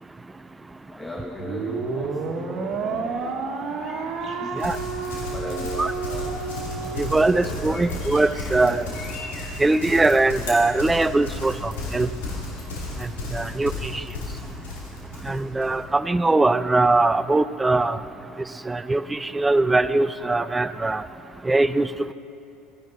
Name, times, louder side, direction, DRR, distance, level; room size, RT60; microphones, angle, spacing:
voice 1, 0.9-3.8 4.4-4.5 5.2-7.0 7.7-7.9 8.7-8.8 13.8-14.1, left 1 dB, 10° left, 0 dB, 1.3 m, -38 dB
sound 1, 1.4-7.9, right 4 dB, 50° right, 1.4 m, -31 dB
sound 2, 3.8-12.2, left 3 dB, 50° left, 1.6 m, -45 dB
Livestock farm animals working animals, 4.6-15.8, left 2 dB, 85° left, 2.7 m, -33 dB
voice 2, 7.0-8.9 9.6-12.1 13.3-14.0 15.2-18.0 18.7-21.0 21.4-21.9, right 2 dB, 15° right, 15 dB, 0.4 m, -21 dB
15.5 x 10.5 x 4.1 m, 3.0 s
hypercardioid pair, 80°, 0 cm